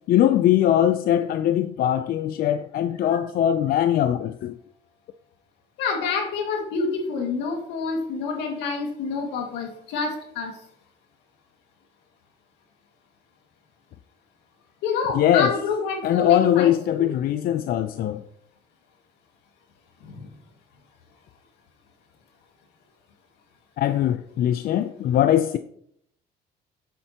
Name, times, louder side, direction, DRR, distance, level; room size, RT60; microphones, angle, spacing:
voice 1, 0.1-4.5 15.1-15.5 16.0-18.2 23.8-25.6, left 11 dB, 60° left, 0.5 m, -21 dB
voice 2, 5.8-10.6 14.8-17.1 20.0-20.3, left 4 dB, 90° left, 2.1 m, -28 dB
9.3 x 7.9 x 2.9 m
cardioid pair, 110°, 17 cm